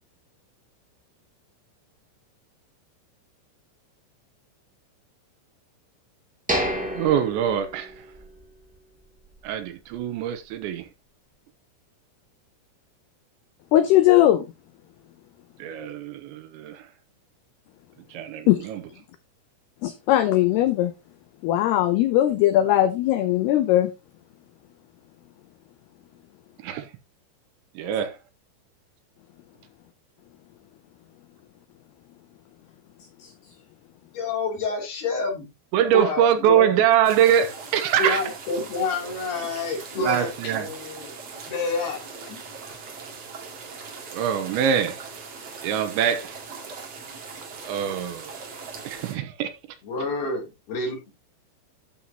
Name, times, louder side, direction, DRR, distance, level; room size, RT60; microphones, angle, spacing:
sound 1, 6.5-8.4 8.7-8.8 9.3-9.5, equal, 5° right, 0.5 m, -29 dB
voice 1, 6.9-8.0 9.4-10.9 15.6-16.9 18.1-18.8 26.6-26.9 27.8-28.2 35.7-38.2 40.0-40.7 44.1-45.0 45.6-46.4 47.7-48.4 48.8-49.5, right 9 dB, 80° right, 3.0 m, -23 dB
voice 2, 13.7-14.5 18.5-18.7 19.8-20.9 21.4-23.9 33.2-33.3, left 13 dB, 80° left, 2.3 m, -19 dB
voice 3, 34.1-35.5 35.9-36.8 38.0-41.1 41.4-42.0 42.3-42.4 49.8-51.1, left 3 dB, 55° left, 4.9 m, -28 dB
sound 2, 37.0-49.2, right 5 dB, 45° right, 2.4 m, -40 dB
12.5 x 7.6 x 2.9 m
omnidirectional pair, 5.6 m